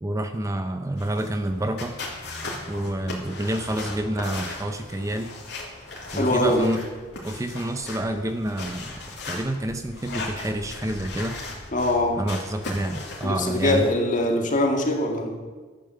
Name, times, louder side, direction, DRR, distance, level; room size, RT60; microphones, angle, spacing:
voice 1, 0.0-2.0 2.7-5.3 6.1-6.8 7.2-9.0 9.3-11.4 12.1-13.9, right 1 dB, 15° right, 7 dB, 0.6 m, -28 dB
sound 1, 1.0-13.8, left 2 dB, 60° left, 2.9 m, -37 dB
voice 2, 6.1-6.7 11.7-12.2 13.2-15.4, left 1 dB, 40° left, 2 dB, 1.9 m, -22 dB
12.0 x 9.1 x 6.8 m, 1.4 s
head